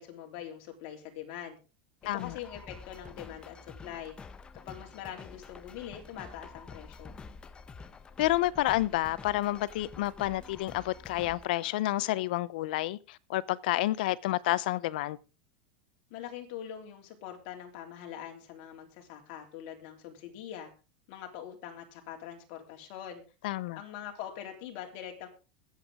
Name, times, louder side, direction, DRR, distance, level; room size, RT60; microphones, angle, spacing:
voice 1, 0.0-1.6 2.1-4.2 4.7-7.1 16.1-20.7 21.1-23.2 23.8-25.3, left 10 dB, 55° left, 3.6 m, -43 dB
sound 1, 2.0-11.4, left 5 dB, 20° left, 0.9 m, -48 dB
voice 2, 2.1-2.4 8.2-15.2 23.4-23.8, left 16 dB, 75° left, 0.7 m, -29 dB
22.0 x 8.1 x 3.7 m
supercardioid pair, 140°, 5 cm